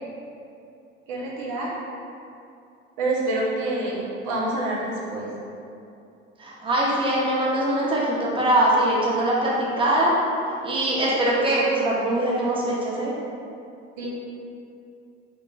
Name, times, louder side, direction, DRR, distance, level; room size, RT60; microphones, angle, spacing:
voice 1, 1.1-1.7 3.0-5.3 14.0-14.1, right 2 dB, 65° right, -5 dB, 0.8 m, -27 dB
voice 2, 6.4-10.1 10.6-13.1, right 1 dB, 15° right, -5 dB, 0.8 m, -22 dB
3.7 x 3.1 x 2.2 m, 2.6 s
hypercardioid pair, 60°, 34 cm